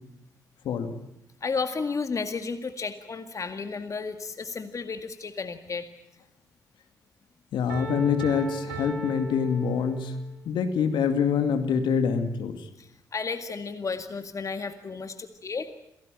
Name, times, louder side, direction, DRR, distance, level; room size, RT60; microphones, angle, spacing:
voice 1, 1.4-5.9 12.8-15.7, left 4 dB, 40° left, 8 dB, 1.9 m, -33 dB
voice 2, 7.5-10.1 10.5-12.6, left 6 dB, 65° left, 7 dB, 2.4 m, -25 dB
Piano, 7.7-10.3, right 2 dB, 80° right, 5.3 m, -37 dB
27.5 x 18.0 x 9.1 m, 0.84 s
figure-of-eight pair, 40°, 9 cm